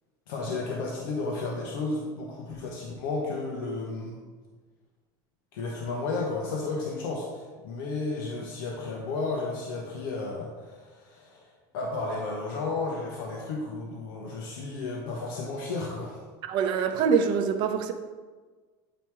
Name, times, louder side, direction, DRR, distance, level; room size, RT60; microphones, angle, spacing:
voice 1, 0.3-4.2 5.5-11.4 11.7-16.2, left 3 dB, 90° left, -1 dB, 1.1 m, -33 dB
voice 2, 16.5-17.9, right 6 dB, 45° right, 7 dB, 0.6 m, -24 dB
9.0 x 3.1 x 4.6 m, 1.4 s
cardioid pair, 155°, 11 cm